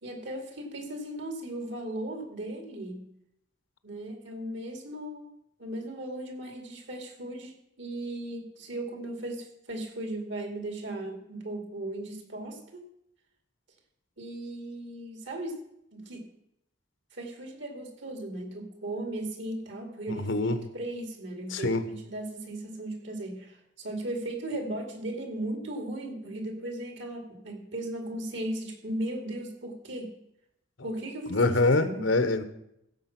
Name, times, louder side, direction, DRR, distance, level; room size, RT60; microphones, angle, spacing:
voice 1, 0.0-3.1 3.8-12.8 14.2-15.6 15.9-16.3 17.1-30.1 30.8-32.0, right 1 dB, 70° right, 3 dB, 2.6 m, -37 dB
voice 2, 20.2-20.6 21.5-21.8 31.3-32.4, left 2 dB, 80° left, 11 dB, 1.0 m, -24 dB
15.5 x 7.4 x 5.9 m, 0.79 s
head